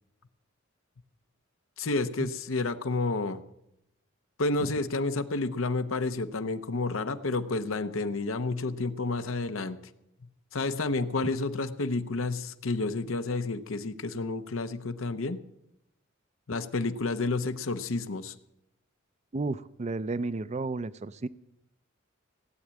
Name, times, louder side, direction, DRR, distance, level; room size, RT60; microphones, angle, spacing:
voice 1, 1.8-3.4 4.4-9.8 10.5-15.4 16.5-18.3, left 3 dB, 85° left, 10 dB, 0.9 m, -30 dB
voice 2, 19.3-21.3, right 3 dB, 35° right, 17 dB, 0.5 m, -32 dB
17.0 x 8.4 x 8.8 m, 0.83 s
head